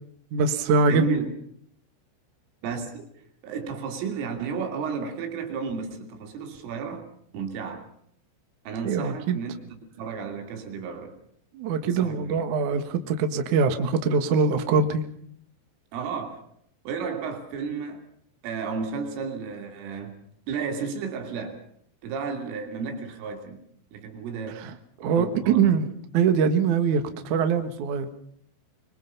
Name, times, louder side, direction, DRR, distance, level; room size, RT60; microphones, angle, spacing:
voice 1, 0.3-1.2 8.8-9.4 11.5-15.0 24.6-24.7 25.0-25.9 26.1-28.1, right 5 dB, 60° right, 2.2 m, -23 dB
voice 2, 0.9-1.4 2.6-3.1 3.4-7.1 7.3-7.9 8.7-11.2 11.8-12.4 15.9-16.5 16.9-18.0 18.4-20.2 20.5-21.6 22.0-23.6 23.9-24.6 25.0-25.8, right 5 dB, 85° right, 5.3 m, -33 dB
25.5 x 23.5 x 5.5 m
omnidirectional pair, 5.6 m